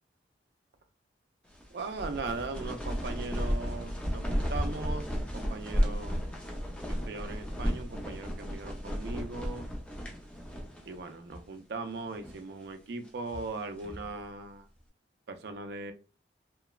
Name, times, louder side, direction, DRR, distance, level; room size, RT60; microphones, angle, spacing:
sound 1, 1.5-11.0 11.3-11.4 12.0-12.5 13.0-14.1, equal, 5° left, 0.3 m, -34 dB
voice 1, 1.7-6.3 6.9-9.7 10.9-14.7 15.3-15.9, right 3 dB, 60° right, 7 dB, 0.4 m, -39 dB
2.9 x 2.0 x 2.3 m, 0.34 s
head